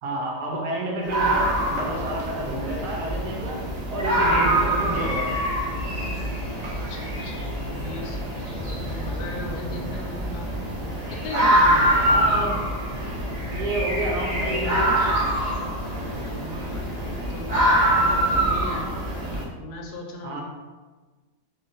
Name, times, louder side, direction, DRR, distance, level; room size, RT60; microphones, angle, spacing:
voice 1, 0.0-3.6 3.9-5.5 9.7-9.9 12.0-12.5 13.5-15.0 18.2-18.4 20.2-20.4, right 1 dB, 80° right, -1 dB, 1.3 m, -30 dB
sound 1, 1.1-19.4, right 1 dB, 60° right, 0.4 m, -24 dB
voice 2, 6.6-10.5 11.1-12.1 16.1-18.9 19.6-20.4, left 2 dB, 75° left, 1 dB, 1.1 m, -38 dB
3.2 x 2.4 x 3.8 m, 1.3 s
omnidirectional pair, 1.7 m